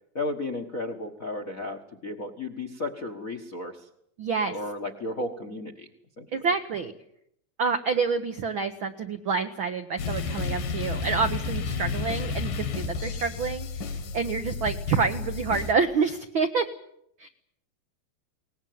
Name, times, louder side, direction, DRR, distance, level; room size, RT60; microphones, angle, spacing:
voice 1, 0.1-3.8 4.5-5.9 6.2-6.3, left 2 dB, 55° left, 7 dB, 0.9 m, -34 dB
voice 2, 4.2-4.6 6.3-6.9 7.6-13.7 14.1-16.7 17.2-17.3, right 5 dB, 85° right, 7 dB, 1.1 m, -27 dB
sound 1, 10.0-15.7, left 4 dB, 75° left, 3.5 m, -31 dB
22.0 x 19.0 x 9.4 m, 0.75 s
omnidirectional pair, 3.9 m